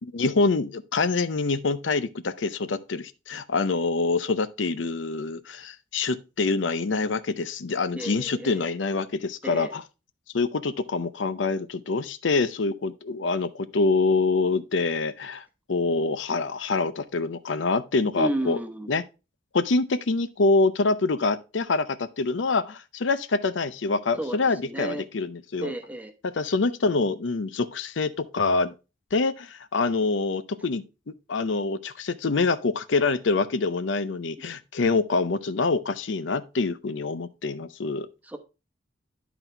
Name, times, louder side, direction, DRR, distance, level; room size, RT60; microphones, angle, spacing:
voice 1, 0.0-9.8 10.3-18.6 18.9-19.0 19.5-25.7 26.2-28.7 29.1-30.8 31.3-38.1, left 3 dB, 70° left, 0.6 m, -25 dB
voice 2, 8.0-8.6 9.4-9.7 18.1-18.9 24.2-25.1 25.6-26.1 38.2-38.4, right 1 dB, 10° right, 1.0 m, -32 dB
11.0 x 4.0 x 4.3 m
head